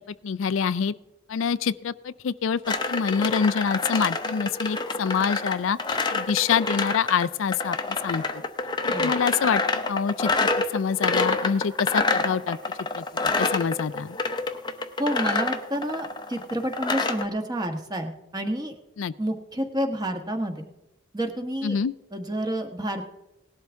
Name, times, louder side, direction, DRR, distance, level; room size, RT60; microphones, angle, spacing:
voice 1, 0.2-0.9 1.3-8.4 8.8-9.6 9.9-12.6 13.0-14.2 19.0-19.1 21.6-21.9, left 6 dB, 70° left, 14 dB, 0.4 m, -26 dB
sound 1, 2.7-17.2, left 3 dB, 20° left, 0.7 m, -27 dB
voice 2, 15.0-18.8 19.2-20.7 21.1-21.8 22.1-23.0, right 1 dB, 20° right, 5 dB, 1.3 m, -29 dB
18.5 x 12.0 x 3.5 m, 0.93 s
head